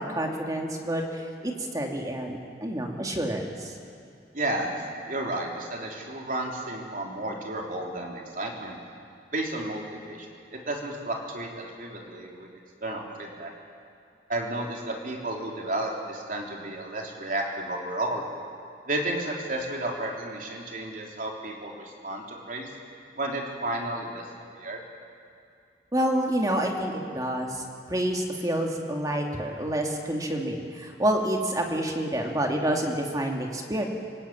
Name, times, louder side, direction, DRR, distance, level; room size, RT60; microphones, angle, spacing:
voice 1, 0.0-3.7 25.9-27.6 27.9-33.8, right 1 dB, 20° right, 1 dB, 2.5 m, -28 dB
voice 2, 4.3-8.8 9.3-12.5 12.8-13.5 14.3-18.2 18.9-22.7 23.2-24.2 24.5-24.8, right 1 dB, 50° right, 0 dB, 3.6 m, -32 dB
26.0 x 18.5 x 8.8 m, 2.4 s
head